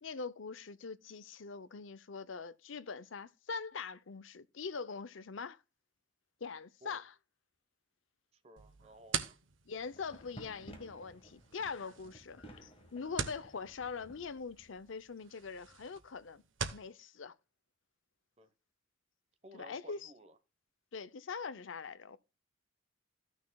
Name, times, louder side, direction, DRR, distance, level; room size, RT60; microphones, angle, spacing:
voice 1, 0.0-5.6 6.4-7.1 9.7-16.4 16.7-17.4 19.5-20.1 20.9-22.2, left 5 dB, 75° left, 0.6 m, -43 dB
voice 2, 8.3-9.4 18.4-18.5 19.4-20.4, equal, 30° right, 1.1 m, -56 dB
sound 1, 8.6-16.9, right 6 dB, 75° right, 1.0 m, -44 dB
sound 2, 9.8-14.8, equal, 30° left, 1.5 m, -56 dB
15.5 x 6.3 x 2.3 m
head